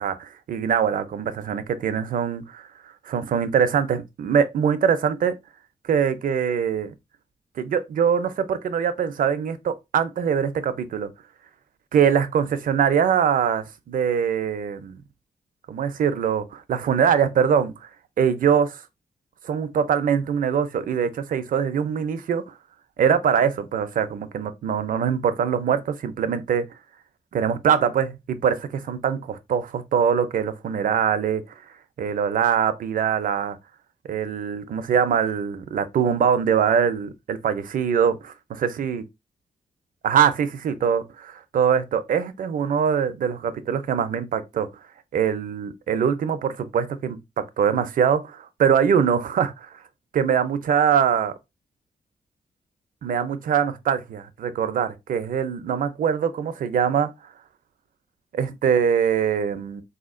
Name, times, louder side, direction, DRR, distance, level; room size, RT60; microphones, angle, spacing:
voice 1, 0.0-2.7 3.0-5.3 5.8-6.9 7.6-11.1 11.9-15.0 15.7-17.7 18.2-18.8 19.4-22.5 23.0-26.7 27.3-31.4 32.0-33.6 34.1-39.0 40.0-44.7 45.1-49.7 50.1-51.3 53.0-57.1 58.3-59.8, right 7 dB, 70° right, 0.5 m, -23 dB
3.7 x 2.8 x 2.5 m
cardioid pair, 75°, 14 cm